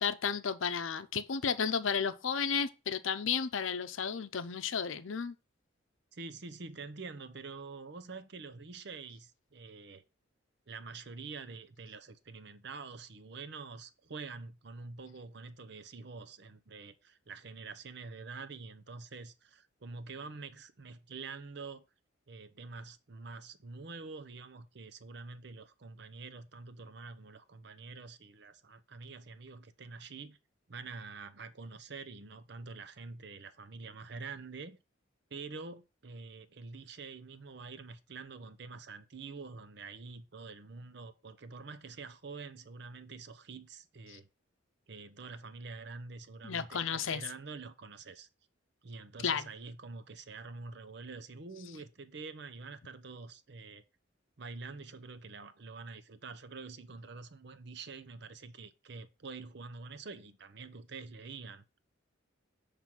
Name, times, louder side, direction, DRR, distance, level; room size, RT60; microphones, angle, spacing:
voice 1, 0.0-5.3 44.1-44.2 46.4-47.2 49.2-49.5, left 6 dB, 80° left, 0.6 m, -33 dB
voice 2, 6.1-10.0 10.7-21.8 22.3-30.4 30.7-34.8 35.3-44.3 44.9-48.3 48.8-53.8 54.4-61.6, right 4 dB, 55° right, 0.7 m, -46 dB
7.3 x 3.3 x 6.0 m
head